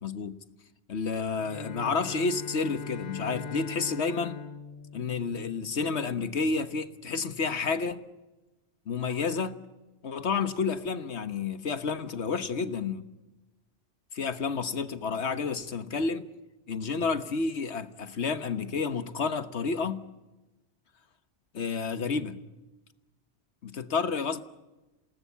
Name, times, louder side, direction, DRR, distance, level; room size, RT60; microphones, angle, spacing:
voice 1, 0.0-0.4 0.9-4.4 4.9-8.0 8.9-9.6 10.0-13.0 14.1-16.3 16.7-20.0 21.5-22.4 23.6-24.4, left 4 dB, 75° left, 1.5 m, -30 dB
Bowed string instrument, 1.3-5.9, left 4 dB, 45° left, 1.1 m, -41 dB
28.0 x 19.0 x 8.3 m
omnidirectional pair, 1.2 m